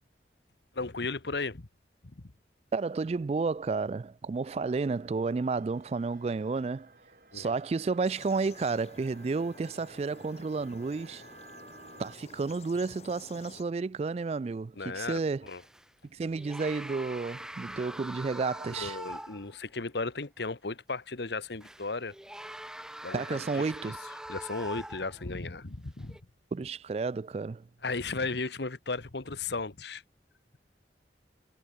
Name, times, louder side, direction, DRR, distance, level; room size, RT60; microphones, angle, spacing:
voice 1, 0.7-1.7 2.2-2.3 7.3-7.5 14.8-15.6 18.8-22.1 23.0-23.9 24.3-26.2 27.8-30.0, left 3 dB, 75° left, 1.3 m, -35 dB
voice 2, 2.7-6.9 7.3-11.2 12.0-15.4 16.1-19.0 23.1-24.0 26.5-27.7, right 4 dB, 35° right, 0.3 m, -31 dB
sound 1, 4.5-12.2, right 3 dB, 50° right, 5.8 m, -55 dB
sound 2, 8.0-13.6, left 4 dB, 35° left, 0.9 m, -52 dB
sound 3, 15.5-15.9 16.3-19.6 20.0-20.1 21.6-25.3 26.0-26.2, right 1 dB, 5° right, 0.6 m, -43 dB
head